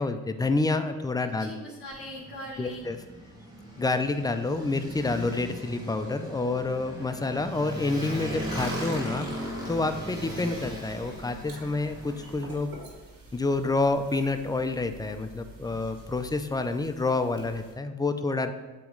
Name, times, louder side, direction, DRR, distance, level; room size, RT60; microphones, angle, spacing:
voice 1, 0.0-1.5 2.6-3.0 3.8-12.7 13.3-18.5, left 3 dB, 10° left, 8 dB, 0.4 m, -28 dB
voice 2, 1.2-2.8 17.2-17.3, equal, 40° left, -4 dB, 1.4 m, -41 dB
Motorcycle, 1.8-12.5, equal, 10° right, 1.6 m, -38 dB
sound 1, 8.3-17.7, right 2 dB, 60° right, 1.8 m, -49 dB
8.4 x 3.1 x 3.8 m, 1.3 s
cardioid pair, 80°, 37 cm